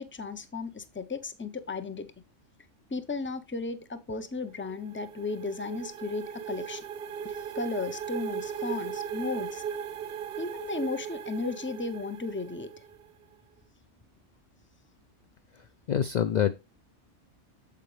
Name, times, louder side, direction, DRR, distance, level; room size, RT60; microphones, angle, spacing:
voice 1, 0.0-2.1 2.9-6.8 7.2-9.6 10.4-12.7, left 3 dB, 15° left, 0.5 m, -35 dB
sound 1, 4.4-13.1, right 8 dB, 60° right, 0.7 m, -38 dB
voice 2, 15.5-16.5, left 9 dB, 65° left, 0.4 m, -27 dB
8.5 x 7.3 x 3.2 m
omnidirectional pair, 1.3 m